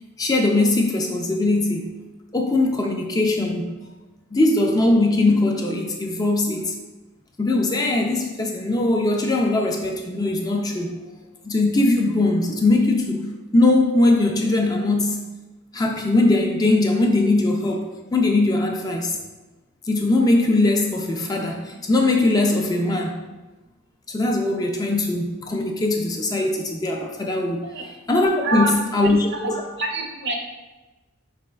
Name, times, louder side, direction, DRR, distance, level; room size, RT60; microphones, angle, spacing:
voice 1, 0.2-1.9 2.3-3.8 4.3-6.7 7.4-11.0 11.4-15.2 15.7-19.2 19.9-23.2 24.1-27.7 28.1-29.6, left 2 dB, 20° left, 2 dB, 0.3 m, -20 dB
voice 2, 29.8-30.3, right 3 dB, 55° right, 2 dB, 0.6 m, -25 dB
5.0 x 4.1 x 2.3 m, 1.1 s
head